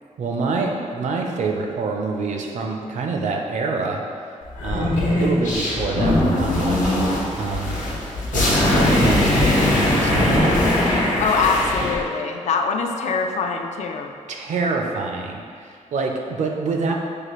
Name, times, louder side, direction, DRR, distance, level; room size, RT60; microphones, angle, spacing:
voice 1, 0.2-4.0 4.6-7.0 7.4-7.8 8.3-10.6 14.3-16.9, right 4 dB, 65° right, 2 dB, 0.5 m, -26 dB
sound 1, 4.5-12.0, left 1 dB, 90° left, 1.0 m, -20 dB
voice 2, 11.2-14.1, left 5 dB, 65° left, 4 dB, 0.4 m, -23 dB
6.7 x 2.4 x 3.0 m, 2.2 s
wide cardioid pair, 135°, 13 cm